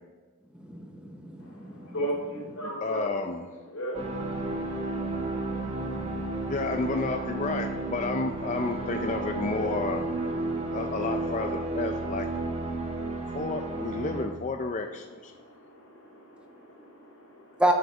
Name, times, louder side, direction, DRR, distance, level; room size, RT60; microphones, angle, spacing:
voice 1, 0.6-1.9 5.6-6.5 17.6-17.7, right 1 dB, 5° right, 3 dB, 0.7 m, -30 dB
voice 2, 1.4-3.1 3.7-6.5 12.7-13.4 15.3-17.6, right 1 dB, 85° left, -1 dB, 3.0 m, -39 dB
voice 3, 2.8-3.5 6.5-10.0 10.7-12.3 13.3-15.3, left 3 dB, 35° left, 5 dB, 0.4 m, -31 dB
sound 1, 3.9-14.3, right 2 dB, 30° right, 1.2 m, -32 dB
7.9 x 7.0 x 5.1 m, 1.4 s
head